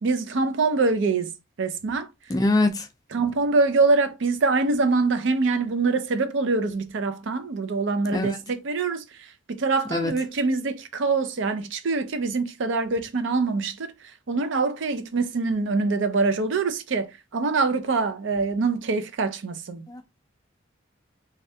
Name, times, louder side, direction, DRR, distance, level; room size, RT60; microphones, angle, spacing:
voice 1, 0.0-1.3 1.6-2.1 3.1-13.9 14.3-20.0, right 3 dB, 65° right, 0.5 m, -24 dB
voice 2, 2.3-2.9 8.1-8.4 9.9-10.1 19.9-20.0, left 2 dB, 20° left, 0.4 m, -23 dB
3.2 x 2.4 x 2.7 m
head